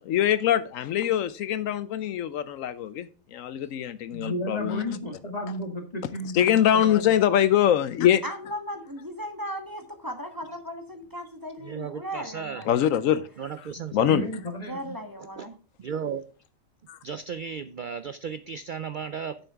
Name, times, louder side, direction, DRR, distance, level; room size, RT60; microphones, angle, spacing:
voice 1, 0.1-5.0 6.3-8.2 12.7-13.3 13.9-14.2 16.9-17.0, left 10 dB, 75° left, 1.0 m, -23 dB
voice 2, 4.1-7.2 13.7-14.9, left 1 dB, 30° left, 1.9 m, -34 dB
voice 3, 8.2-12.7 14.7-15.5, equal, 15° right, 1.2 m, -36 dB
voice 4, 11.6-12.7 13.4-14.3 15.4-15.5 15.8-16.2 17.0-19.4, right 7 dB, 70° right, 0.4 m, -35 dB
9.0 x 7.0 x 3.4 m
omnidirectional pair, 1.4 m